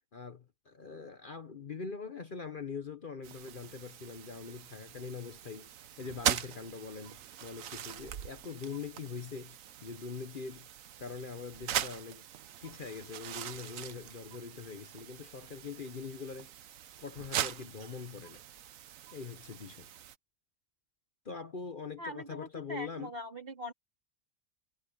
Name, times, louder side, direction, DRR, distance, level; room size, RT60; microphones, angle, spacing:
voice 1, 0.0-5.7 6.0-10.7 11.0-12.2 12.6-18.4 19.1-19.9 21.2-23.1, left 5 dB, 45° left, 1.1 m, -43 dB
sound 1, 3.2-20.1, right 10 dB, 80° right, 1.2 m, -41 dB
voice 2, 22.0-23.7, equal, 45° right, 3.7 m, -42 dB
omnidirectional pair, 1.4 m